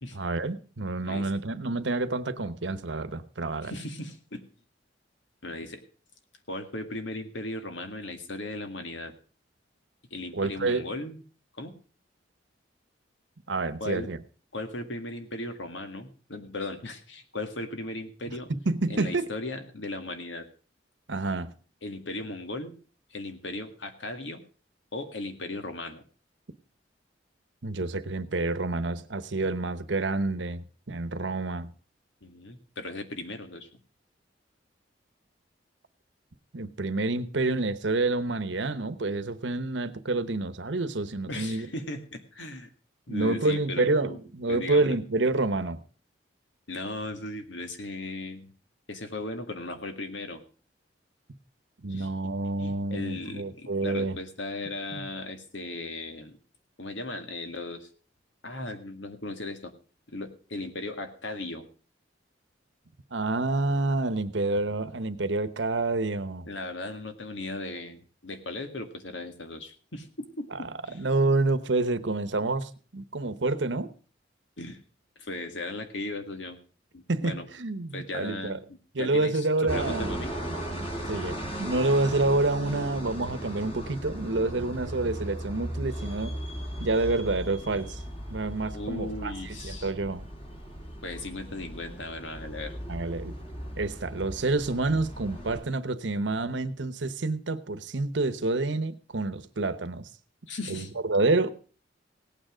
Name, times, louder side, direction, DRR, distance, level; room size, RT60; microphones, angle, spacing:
voice 1, 0.1-3.7 10.3-10.9 13.5-14.2 18.7-19.3 21.1-21.5 27.6-31.7 36.5-41.7 43.1-45.8 51.8-54.2 55.0-55.1 63.1-66.5 70.5-73.9 77.1-78.6 78.9-80.1 81.1-86.4 86.8-88.0 88.3-90.3 92.9-93.3 93.8-100.1 100.7-101.5, right 2 dB, 75° right, 13 dB, 1.0 m, -28 dB
voice 2, 3.6-4.4 5.4-5.8 6.5-9.1 10.1-11.2 11.5-11.7 13.8-14.1 14.5-18.5 18.9-20.5 21.8-22.7 23.1-24.4 24.9-26.0 32.2-33.7 41.3-42.7 43.1-44.2 44.5-45.0 46.7-48.5 48.9-50.4 51.9-52.1 52.6-56.4 56.8-57.9 58.4-59.7 60.1-61.7 66.4-71.0 74.6-74.8 75.2-76.6 76.9-77.5 77.9-78.6 79.0-79.5 79.7-80.3 88.7-89.9 91.0-92.7 100.5-100.9, left 2 dB, 85° left, 7 dB, 1.9 m, -37 dB
sound 1, 79.7-95.6, right 1 dB, 35° left, 3.2 m, -37 dB
17.0 x 9.1 x 5.0 m, 0.38 s
head